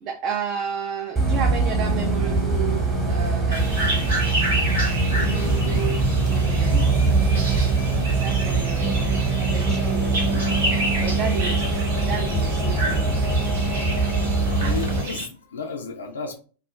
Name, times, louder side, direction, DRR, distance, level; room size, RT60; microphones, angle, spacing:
voice 1, 0.0-3.7 5.1-6.9 8.1-10.4 11.0-13.2, right 6 dB, 35° right, 2 dB, 0.4 m, -32 dB
Bus, 1.2-15.0, right 3 dB, 20° right, 1.0 m, -22 dB
sound 1, 3.5-15.2, right 1 dB, 65° right, 0.9 m, -30 dB
voice 2, 14.6-16.4, left 5 dB, 70° left, 2 dB, 0.4 m, -33 dB
2.4 x 2.1 x 3.1 m, 0.38 s
figure-of-eight pair, 90°, 0 cm